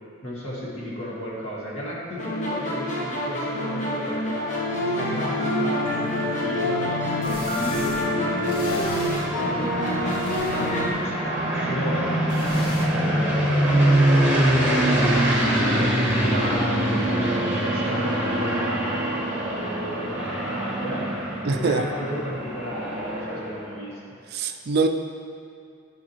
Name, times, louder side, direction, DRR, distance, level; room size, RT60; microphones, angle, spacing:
voice 1, 0.2-4.5 4.8-7.9 8.2-13.6 14.1-15.2 15.6-24.0, equal, 65° left, -6 dB, 1.9 m, -34 dB
sound 1, 2.2-10.9, left 1 dB, 35° left, 1.1 m, -26 dB
sound 2, 6.1-6.2 7.2-8.1 8.4-9.3 9.9-11.0 12.3-12.9, left 1 dB, 80° left, 1.2 m, -38 dB
sound 3, 6.5-23.7, right 1 dB, 10° right, 1.3 m, -24 dB
voice 2, 21.4-21.8 24.3-24.9, right 4 dB, 45° right, 5 dB, 0.3 m, -23 dB
11.0 x 5.0 x 3.0 m, 2.4 s
head